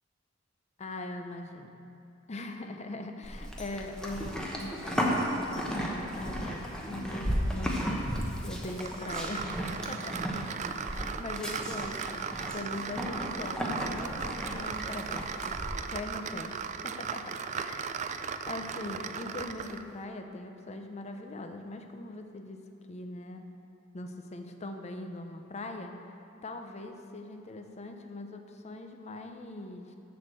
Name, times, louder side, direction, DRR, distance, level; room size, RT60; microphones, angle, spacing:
voice 1, 0.8-1.7 2.3-12.3 12.5-15.6 15.9-22.6 22.9-23.4 23.9-25.9 26.4-30.0, left 2 dB, 35° left, 6 dB, 0.6 m, -41 dB
Livestock farm animals working animals, 3.2-15.7, equal, 5° left, 0.9 m, -34 dB
sound 1, 8.8-19.9, right 6 dB, 35° right, 0.3 m, -37 dB
7.0 x 6.3 x 7.6 m, 2.6 s
head